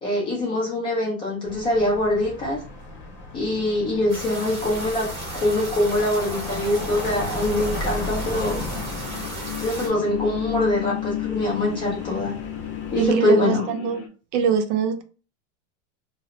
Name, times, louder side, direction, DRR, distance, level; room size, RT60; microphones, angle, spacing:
voice 1, 0.0-2.6 3.3-5.1 5.3-8.6 9.6-12.3 12.9-13.6, left 1 dB, 15° left, -3 dB, 0.3 m, -23 dB
sound 1, 1.4-13.1, left 2 dB, 30° left, 0.7 m, -35 dB
sound 2, 4.1-9.9, right 1 dB, 15° right, 0.7 m, -35 dB
sound 3, 6.8-14.1, left 14 dB, 80° left, 0.7 m, -34 dB
voice 2, 13.0-14.0 14.3-15.0, right 7 dB, 75° right, 7 dB, 0.6 m, -22 dB
2.3 x 2.0 x 2.7 m, 0.36 s
supercardioid pair, 160°, 37 cm